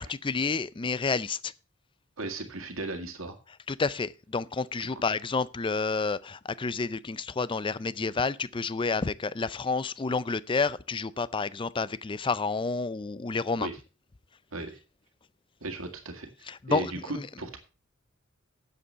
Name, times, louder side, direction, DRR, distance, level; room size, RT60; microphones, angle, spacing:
voice 1, 0.0-1.5 3.7-13.7 16.5-17.3, left 4 dB, 25° left, 0.5 m, -30 dB
voice 2, 2.2-3.4 13.6-13.7 14.5-14.8 15.6-17.6, right 2 dB, 85° right, 2.0 m, -36 dB
9.7 x 7.9 x 5.6 m
head